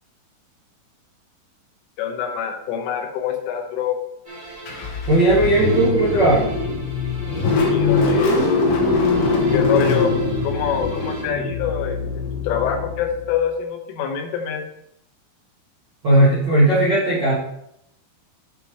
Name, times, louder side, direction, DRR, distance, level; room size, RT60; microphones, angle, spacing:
voice 1, 2.0-4.0 7.3-8.3 9.5-10.1 10.4-14.7, left 8 dB, 85° left, 3 dB, 3.7 m, -26 dB
sound 1, 4.2-11.2, right 1 dB, 20° right, 1.4 m, -39 dB
Car / Engine starting, 4.7-13.4, left 3 dB, 65° left, 3.6 m, -22 dB
voice 2, 5.1-6.5 16.0-17.3, right 1 dB, 70° right, -7 dB, 1.0 m, -16 dB
11.0 x 7.1 x 3.1 m, 0.77 s
omnidirectional pair, 5.6 m